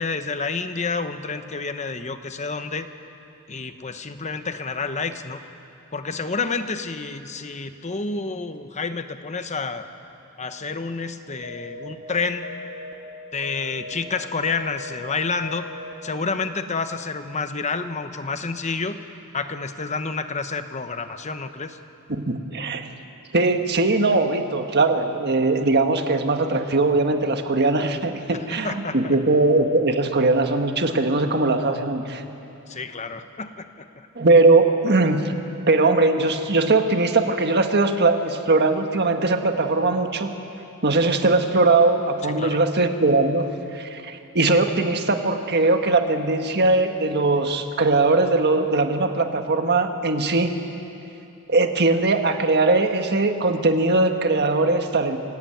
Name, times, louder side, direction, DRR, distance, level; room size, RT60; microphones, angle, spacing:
voice 1, 0.0-2.9 3.5-5.4 5.9-9.8 10.4-12.5 13.3-15.7 16.0-19.0 19.3-21.8 28.3-29.1 32.7-33.9 42.2-42.6, left 4 dB, 30° left, 9 dB, 1.0 m, -29 dB
sound 1, 11.4-11.9 12.4-12.9 13.4-13.9 14.4-14.9 15.4-15.9, left 2 dB, 70° left, 2.9 m, -37 dB
voice 2, 22.1-22.9 23.3-32.2 34.1-35.3 35.7-40.3 40.8-50.5 51.5-55.2, right 3 dB, 50° right, 6 dB, 1.5 m, -20 dB
25.0 x 17.0 x 9.2 m, 2.8 s
head